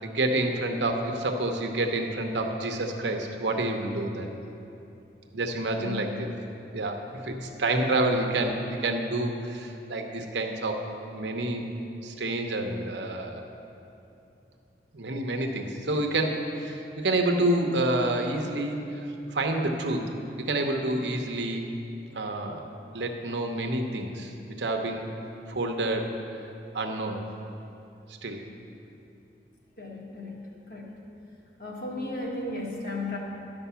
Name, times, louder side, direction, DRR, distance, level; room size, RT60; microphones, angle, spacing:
voice 1, 0.0-4.3 5.3-6.3 6.7-8.5 8.8-10.8 11.1-11.6 12.0-13.4 14.9-19.0 19.3-20.1 20.5-21.7 22.1-22.6 22.9-24.3 24.6-25.1 25.5-26.1 26.7-27.2 28.2-28.4, right 2 dB, 90° right, 3 dB, 0.9 m, -28 dB
voice 2, 7.1-7.5 29.8-30.4 30.7-30.9 31.6-33.2, left 2 dB, 55° left, -2 dB, 1.5 m, -35 dB
11.5 x 5.4 x 6.9 m, 2.9 s
head